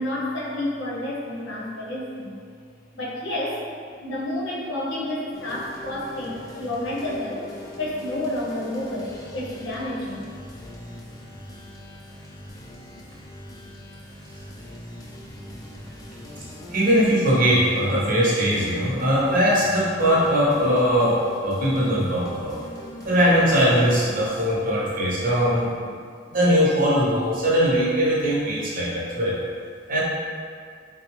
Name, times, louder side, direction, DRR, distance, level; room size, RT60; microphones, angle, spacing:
voice 1, 0.0-2.4 2.9-3.6 4.0-7.4 7.8-10.3, left 1 dB, 85° left, -5 dB, 0.7 m, -30 dB
sound 1, 5.3-24.3, left 1 dB, 20° left, 0.4 m, -41 dB
voice 2, 16.7-22.6 23.0-25.9 26.3-29.4 29.9-30.0, equal, 50° right, -6 dB, 0.7 m, -20 dB
3.8 x 2.0 x 3.0 m, 2.2 s
head